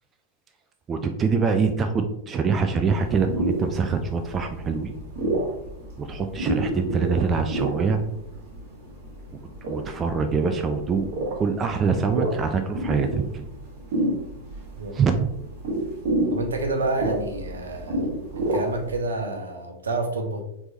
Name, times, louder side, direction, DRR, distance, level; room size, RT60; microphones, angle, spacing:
voice 1, 0.9-5.0 6.0-8.0 9.7-13.5 14.9-15.1, right 5 dB, 25° right, 6 dB, 0.4 m, -24 dB
sound 1, 2.9-19.0, right 1 dB, 50° right, 1.4 m, -30 dB
voice 2, 16.3-20.4, right 2 dB, 70° right, 4 dB, 0.7 m, -29 dB
4.4 x 3.4 x 2.6 m, 0.81 s
figure-of-eight pair, 90°, 0 cm